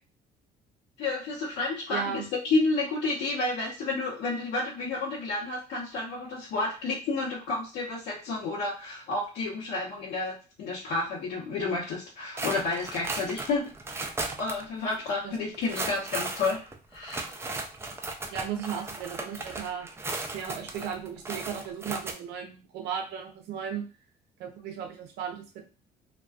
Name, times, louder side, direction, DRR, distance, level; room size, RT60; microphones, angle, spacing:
voice 1, 1.0-13.7 14.4-17.3, left 3 dB, 80° left, -7 dB, 0.8 m, -30 dB
voice 2, 1.9-2.3 15.2-15.3 18.3-19.9 20.3-23.9 24.4-25.6, right 8 dB, 80° right, 5 dB, 0.5 m, -35 dB
sound 1, 12.4-14.6 14.9-15.0 15.5-22.1, right 2 dB, 15° right, 0.3 m, -36 dB
2.4 x 2.2 x 2.3 m, 0.33 s
cardioid pair, 110°, 17 cm